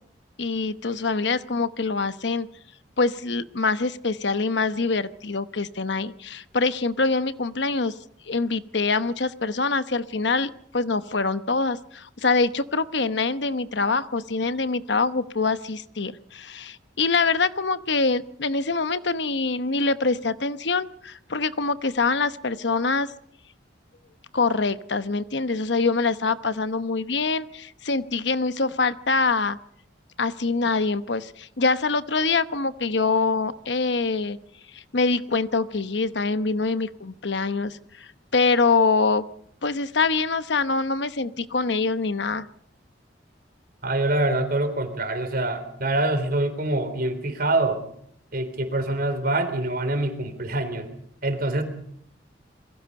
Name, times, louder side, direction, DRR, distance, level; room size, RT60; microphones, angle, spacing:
voice 1, 0.4-2.5 3.0-7.9 8.2-23.1 24.3-29.6 30.2-34.4 34.7-39.2 39.6-42.5, left 4 dB, 70° left, 13 dB, 1.0 m, -24 dB
voice 2, 43.8-47.8 48.3-50.9 51.2-51.6, right 2 dB, 55° right, 7 dB, 3.9 m, -25 dB
28.0 x 22.0 x 5.4 m, 0.66 s
head